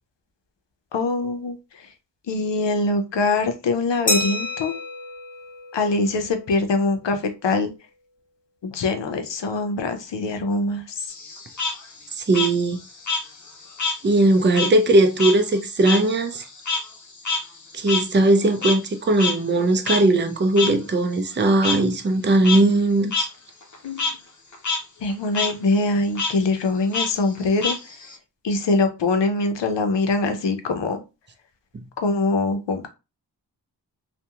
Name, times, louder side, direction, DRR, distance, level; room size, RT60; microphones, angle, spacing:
voice 1, 0.9-1.6 2.3-4.7 5.7-7.7 8.6-11.1 23.8-24.2 25.0-27.8 28.4-31.0 32.0-32.9, left 3 dB, 80° left, 0.6 m, -23 dB
Glass, 4.1-6.5, left 2 dB, 20° left, 1.0 m, -29 dB
Frog, 11.1-14.0 14.3-18.9 19.2-19.3 19.8-20.0 20.6-20.7 21.6-21.8 22.3-22.6 23.1-23.2 23.6-24.1 24.5-24.8 25.1-25.5 26.1-26.3 26.9-28.1, left 4 dB, 45° left, 0.8 m, -26 dB
voice 2, 12.2-12.8 14.0-16.5 17.7-23.3 31.7-31.8, right 2 dB, 25° right, 0.5 m, -19 dB
2.8 x 2.2 x 2.3 m
cardioid pair, 45°, 43 cm